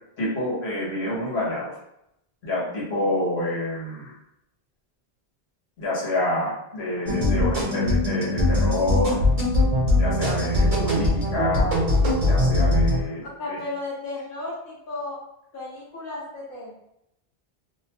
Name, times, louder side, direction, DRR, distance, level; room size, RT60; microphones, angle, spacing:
voice 1, 0.2-1.7 2.4-4.1 5.8-9.2 10.0-11.7 12.2-13.6, left 1 dB, 80° left, -7 dB, 1.4 m, -27 dB
sound 1, 7.1-13.0, left 1 dB, 40° right, 0.7 m, -21 dB
voice 2, 13.4-15.2 15.5-16.7, left 2 dB, 60° left, -5 dB, 1.1 m, -34 dB
2.7 x 2.1 x 2.8 m, 0.81 s
omnidirectional pair, 1.1 m